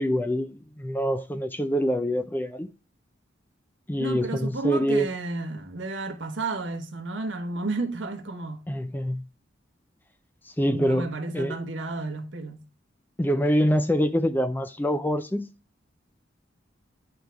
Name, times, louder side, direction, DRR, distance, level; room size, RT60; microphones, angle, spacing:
voice 1, 0.0-2.7 3.9-5.1 8.7-9.2 10.6-11.1 11.3-11.6 13.2-15.5, equal, 10° left, 0.5 m, -25 dB
voice 2, 4.0-8.7 10.6-12.7, right 2 dB, 80° right, 1.3 m, -32 dB
9.9 x 3.7 x 4.5 m
head